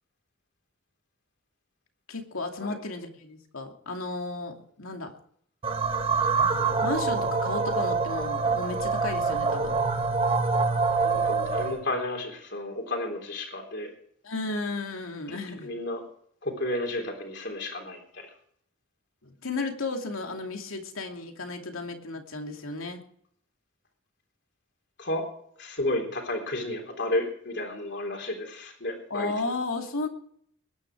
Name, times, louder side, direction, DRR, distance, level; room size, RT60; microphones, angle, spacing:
voice 1, 2.1-5.1 6.8-9.8 14.2-15.7 19.2-23.0 29.1-30.1, left 3 dB, 85° left, 3 dB, 2.6 m, -34 dB
sound 1, 5.6-11.8, right 4 dB, 25° right, 1.4 m, -25 dB
voice 2, 11.0-13.9 15.6-16.0 16.4-18.3 25.0-25.3 25.6-29.3, left 1 dB, 55° left, 3 dB, 3.6 m, -32 dB
21.0 x 10.5 x 4.8 m, 0.64 s
head